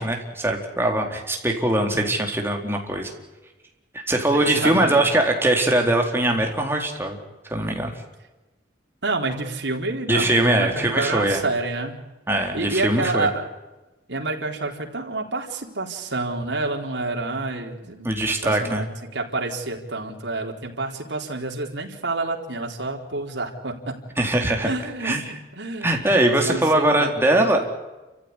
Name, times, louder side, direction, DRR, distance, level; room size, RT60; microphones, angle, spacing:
voice 1, 0.0-3.1 3.9-7.2 7.5-7.9 10.1-11.4 12.3-13.3 18.0-18.9 24.2-24.7 25.0-25.2 25.8-27.6, right 1 dB, 15° right, 1 dB, 4.0 m, -21 dB
voice 2, 4.3-5.1 9.0-12.0 12.5-13.4 14.1-23.9 24.6-25.9 26.2-27.5, right 2 dB, 85° right, 1 dB, 4.3 m, -28 dB
29.5 x 15.0 x 9.9 m, 1.1 s
head